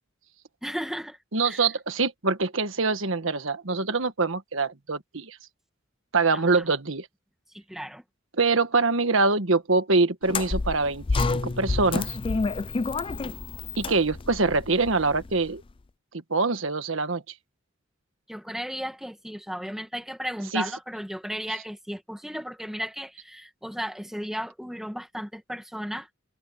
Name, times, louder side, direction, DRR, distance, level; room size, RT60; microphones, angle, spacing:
voice 1, 0.6-1.2 1.4-1.7 6.3-6.6 7.5-8.0 18.3-26.1, equal, ahead, 1.9 m, -35 dB
voice 2, 1.3-5.4 6.1-7.1 8.4-12.2 13.8-15.6 16.3-17.2 20.5-20.6, right 3 dB, 70° right, 1.6 m, -24 dB
sound 1, 10.2-15.5, left 3 dB, 25° left, 0.4 m, -29 dB
head